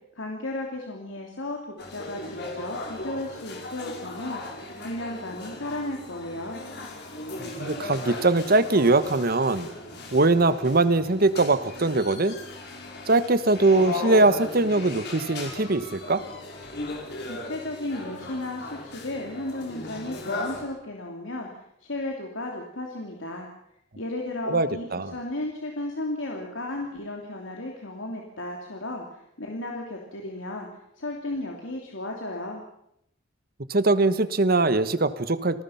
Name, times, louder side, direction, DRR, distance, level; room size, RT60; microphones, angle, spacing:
voice 1, 0.1-1.6 1.9-6.6 17.3-23.5 24.0-30.7 31.0-32.6, left 1 dB, 80° left, 1 dB, 3.0 m, -34 dB
sound 1, 1.8-20.6, left 2 dB, 60° left, 5.2 m, -37 dB
voice 2, 7.4-9.7 10.1-12.4 13.1-16.2 24.5-25.1 33.7-35.6, right 2 dB, 50° right, 13 dB, 1.3 m, -22 dB
28.5 x 19.5 x 5.8 m, 0.77 s
head